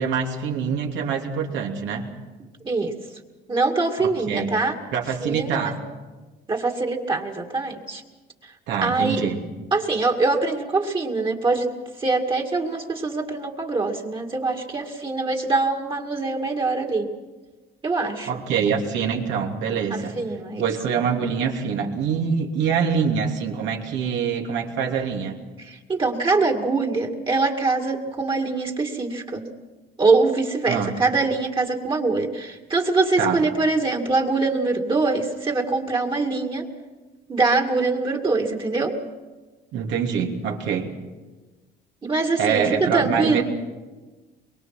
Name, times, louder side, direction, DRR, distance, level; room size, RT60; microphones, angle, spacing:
voice 1, 0.0-2.1 4.0-4.5 4.9-5.8 8.7-9.4 18.3-20.2 20.6-25.4 30.7-30.9 33.2-33.4 39.7-40.9 42.4-43.4, right 6 dB, 75° right, 1 dB, 3.1 m, -25 dB
voice 2, 3.5-4.8 5.2-5.7 6.5-8.0 8.4-8.5 8.8-9.2 9.7-11.7 12.0-17.1 17.8-18.3 19.9-20.6 25.6-29.4 30.0-36.7 37.3-38.9 42.0-43.4, right 3 dB, 25° right, 3 dB, 2.3 m, -23 dB
23.5 x 23.0 x 6.0 m, 1.3 s
cardioid pair, 115°, 19 cm